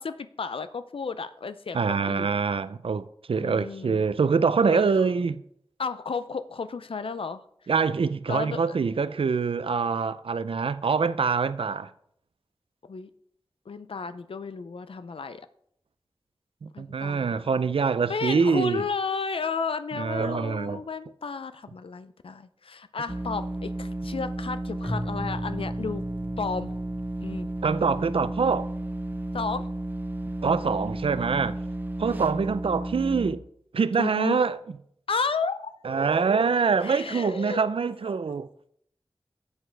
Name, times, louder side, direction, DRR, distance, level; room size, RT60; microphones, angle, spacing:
voice 1, 0.0-2.3 3.3-4.1 4.7-5.0 5.8-7.4 8.3-8.8 12.8-13.1 13.7-15.4 16.7-17.4 18.1-26.0 26.4-26.7 27.2-27.5 29.3-29.7 34.0-34.4 35.1-35.7 36.8-37.6, left 5 dB, 80° left, 0.5 m, -33 dB
voice 2, 1.7-5.4 7.7-11.9 16.6-18.8 19.9-20.8 27.6-28.7 30.4-31.6 32.0-33.4 33.7-34.6 35.8-38.5, right 5 dB, 80° right, 0.5 m, -25 dB
sound 1, 23.1-33.4, right 1 dB, 20° right, 0.6 m, -33 dB
Keyboard (musical), 24.8-27.9, equal, ahead, 2.3 m, -38 dB
12.0 x 8.2 x 3.3 m
wide cardioid pair, 65°, 9 cm